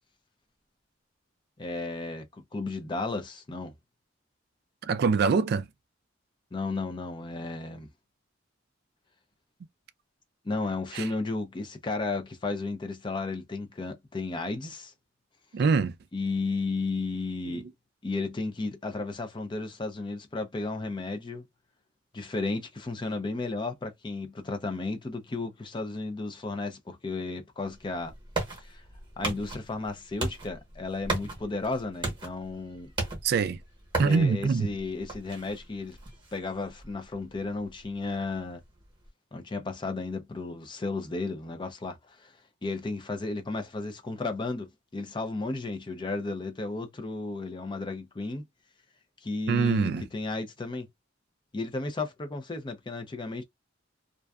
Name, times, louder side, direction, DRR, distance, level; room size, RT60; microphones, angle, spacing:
voice 1, 1.6-3.7 6.5-7.9 10.4-14.9 16.1-17.7 18.0-21.4 22.1-28.1 28.6-28.8 29.2-32.9 34.0-36.0 36.3-38.6 39.3-42.3 42.6-48.4 49.2-50.9 51.5-53.4, left 3 dB, 25° left, 0.5 m, -33 dB
voice 2, 4.9-5.7 10.9-11.1 15.5-15.9 17.5-17.6 33.2-33.6 34.0-34.7 49.5-50.0, right 5 dB, 55° right, 0.3 m, -24 dB
sound 1, 27.6-39.1, right 3 dB, 25° right, 1.0 m, -38 dB
2.5 x 2.2 x 2.3 m
head